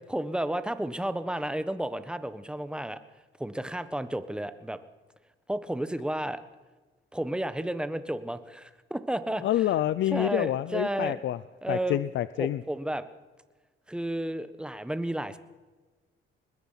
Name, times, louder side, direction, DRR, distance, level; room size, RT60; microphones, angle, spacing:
voice 1, 0.1-3.0 3.4-4.8 5.5-6.4 7.1-9.4 10.1-11.2 11.6-12.0 12.4-13.1 13.9-15.4, right 1 dB, 5° right, 12 dB, 1.3 m, -32 dB
voice 2, 9.4-11.4 11.7-12.6, left 13 dB, 70° left, 16 dB, 0.6 m, -27 dB
23.0 x 20.5 x 5.8 m, 1.3 s
cardioid pair, 90°, 20 cm